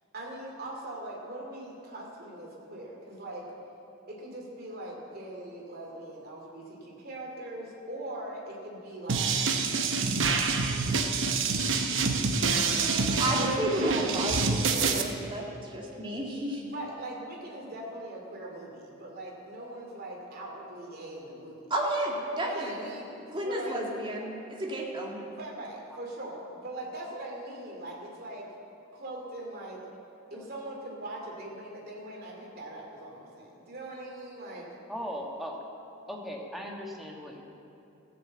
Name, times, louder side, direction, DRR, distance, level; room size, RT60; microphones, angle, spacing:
voice 1, 0.1-3.5 4.1-9.4 10.3-11.6 12.6-13.5 13.8-14.1 16.6-21.6 22.4-23.8 25.3-28.5 28.9-29.8 30.3-34.7, right 1 dB, 50° right, -1 dB, 2.6 m, -41 dB
sound 1, 9.1-15.0, right 4 dB, 65° right, 0.9 m, -27 dB
voice 2, 13.2-16.6 21.7-23.0 23.3-25.2, right 1 dB, 25° right, -2 dB, 2.0 m, -32 dB
voice 3, 34.9-35.6 36.1-37.4, equal, ahead, -1 dB, 1.4 m, -38 dB
15.0 x 7.0 x 7.6 m, 2.8 s
head